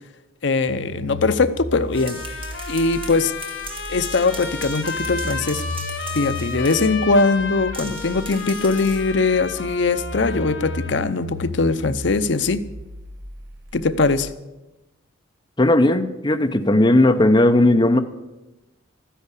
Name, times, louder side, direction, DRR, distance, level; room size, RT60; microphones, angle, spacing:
voice 1, 0.4-2.2 2.7-3.3 3.9-5.6 6.1-12.6 13.7-14.3, left 3 dB, 60° left, 12 dB, 0.7 m, -21 dB
sound 1, 0.7-14.3, left 1 dB, 65° right, 1.1 m, -35 dB
sound 2, 1.7-7.0 7.7-9.1, right 3 dB, 25° right, 1.7 m, -39 dB
Trumpet, 1.9-11.1, left 4 dB, 80° left, 2.6 m, -33 dB
voice 2, 15.6-18.0, left 1 dB, 20° left, 6 dB, 0.6 m, -16 dB
13.5 x 10.0 x 8.2 m, 1.0 s
head